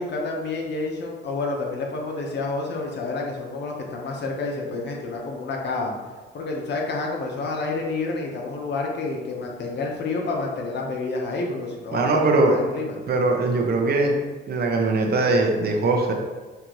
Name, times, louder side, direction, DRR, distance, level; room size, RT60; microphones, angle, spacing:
voice 1, 0.0-5.9 6.3-13.0, left 3 dB, 60° left, 0 dB, 1.0 m, -29 dB
voice 2, 11.9-12.6 13.1-14.2 14.5-16.1, right 3 dB, 50° right, 2 dB, 0.7 m, -21 dB
5.7 x 2.5 x 3.0 m, 1.3 s
cardioid pair, 90°, 20 cm